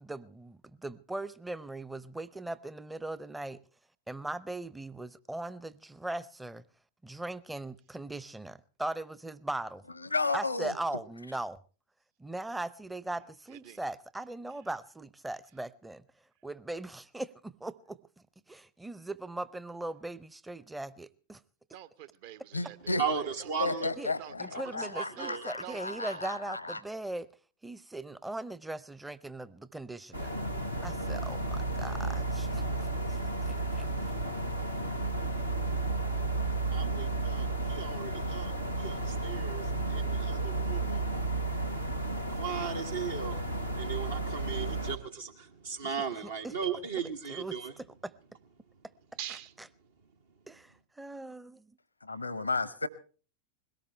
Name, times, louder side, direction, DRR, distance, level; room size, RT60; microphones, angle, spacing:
voice 1, 0.0-3.6 4.1-6.6 7.0-9.8 10.3-11.6 12.2-16.0 16.4-18.0 18.5-21.4 24.0-24.1 24.4-27.3 27.6-30.3 30.8-33.8 46.4-46.5 47.3-47.6 48.0-48.1 50.5-51.7, right 2 dB, 5° right, 0.7 m, -39 dB
voice 2, 10.0-10.8 22.5-23.0 23.6-26.8 52.0-52.9, left 3 dB, 80° left, 0.8 m, -33 dB
voice 3, 21.7-23.9 24.2-24.8 25.2-26.2 49.2-49.5, right 11 dB, 50° right, 1.0 m, -46 dB
voice 4, 23.0-23.9 24.5-25.5 36.7-41.4 42.2-47.7, right 6 dB, 65° right, 1.3 m, -37 dB
sound 1, 30.1-45.0, right 2 dB, 85° right, 1.3 m, -33 dB
21.5 x 18.0 x 3.3 m
figure-of-eight pair, 90°, 0 cm